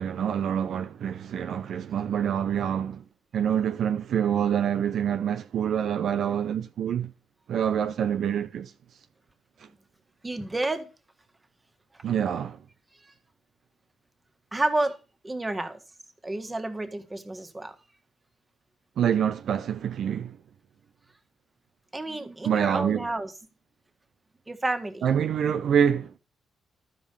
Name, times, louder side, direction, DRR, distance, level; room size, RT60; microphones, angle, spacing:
voice 1, 0.0-3.0 3.3-7.1 7.5-8.7 12.0-12.6 19.0-20.4 22.4-23.1 25.0-26.2, right 8 dB, 70° right, 0.6 m, -26 dB
voice 2, 10.2-10.9 13.0-13.1 14.5-14.9 15.2-15.8 16.2-17.7 21.9-23.4 24.5-25.1, right 2 dB, 20° right, 1.7 m, -30 dB
12.5 x 5.2 x 5.3 m
supercardioid pair, 55°, 0 cm